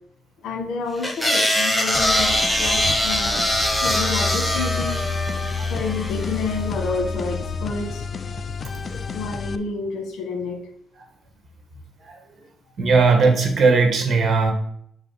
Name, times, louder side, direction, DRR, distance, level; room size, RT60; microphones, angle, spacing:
voice 1, 0.4-5.1 5.7-8.1 9.1-10.7, left 4 dB, 75° left, 3 dB, 1.5 m, -29 dB
sound 1, 1.0-6.4, equal, ahead, 1.2 m, -22 dB
sound 2, 1.9-9.6, left 5 dB, 40° left, 0.5 m, -29 dB
voice 2, 12.8-14.5, right 4 dB, 50° right, 4 dB, 1.8 m, -18 dB
5.9 x 4.0 x 5.8 m, 0.67 s
cardioid pair, 90°, 0 cm